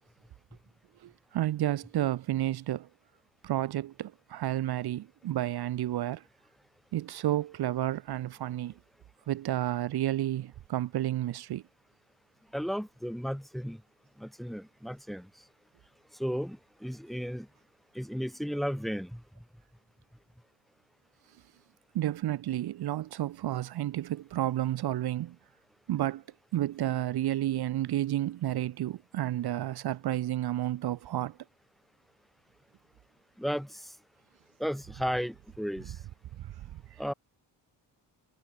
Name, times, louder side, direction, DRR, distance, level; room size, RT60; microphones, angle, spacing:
voice 1, 1.0-2.9 3.4-6.2 6.9-8.7 9.3-11.6 21.9-25.3 25.9-26.2 26.5-31.3 36.4-36.5, right 13 dB, 60° right, 1.6 m, -31 dB
voice 2, 12.5-13.8 14.2-15.3 16.2-17.5 17.9-19.2 33.4-33.8 34.6-35.9 37.0-37.1, equal, ahead, 4.5 m, -34 dB
cardioid pair, 170°, 44 cm